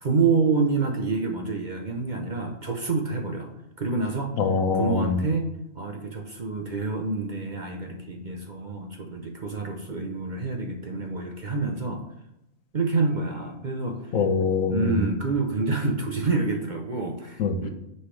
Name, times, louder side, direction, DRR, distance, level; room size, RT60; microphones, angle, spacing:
voice 1, 0.0-3.5 3.8-4.3 4.7-12.0 12.7-14.2 14.7-17.7, right 4 dB, 40° right, 4 dB, 0.8 m, -27 dB
voice 2, 4.4-5.2 14.1-15.0 17.4-17.5, left 5 dB, 75° left, 7 dB, 1.3 m, -23 dB
9.6 x 5.6 x 3.3 m, 0.86 s
omnidirectional pair, 1.4 m